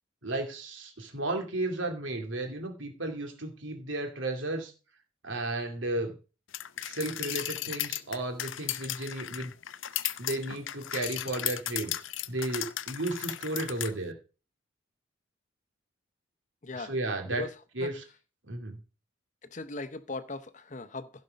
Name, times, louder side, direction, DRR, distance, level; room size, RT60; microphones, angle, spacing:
voice 1, 0.2-4.7 5.2-6.1 6.8-9.5 10.2-11.9 12.3-14.2 16.7-17.5 17.7-18.0 18.4-18.8, right 2 dB, 75° right, 2.6 m, -34 dB
sound 1, 6.5-13.9, left 13 dB, 80° left, 0.6 m, -35 dB
voice 2, 16.6-17.0 17.3-17.5 17.8-17.9 19.5-21.1, left 2 dB, 40° left, 0.7 m, -38 dB
15.5 x 5.3 x 5.2 m
head